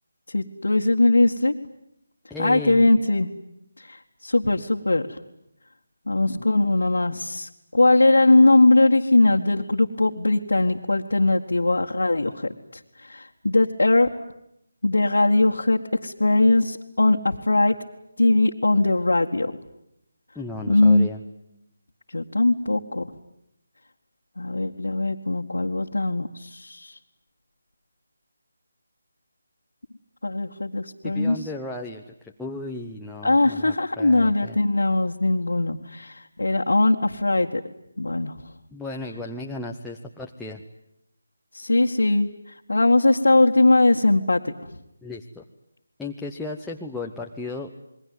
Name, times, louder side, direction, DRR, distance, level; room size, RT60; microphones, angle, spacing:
voice 1, 0.3-1.5 2.4-3.3 3.9-5.2 6.1-12.5 13.1-14.1 14.8-17.7 18.2-19.5 20.7-21.1 22.1-23.1 24.4-26.9 30.2-31.4 33.2-37.6 38.0-38.3 41.5-42.3 42.7-44.5, left 2 dB, 90° left, -1 dB, 1.9 m, -20 dB
voice 2, 2.3-2.9 20.3-21.2 31.0-34.6 38.7-40.6 45.0-45.4 46.0-47.7, left 2 dB, 5° left, -2 dB, 1.0 m, -35 dB
28.5 x 21.5 x 9.6 m, 0.79 s
figure-of-eight pair, 165°, 0 cm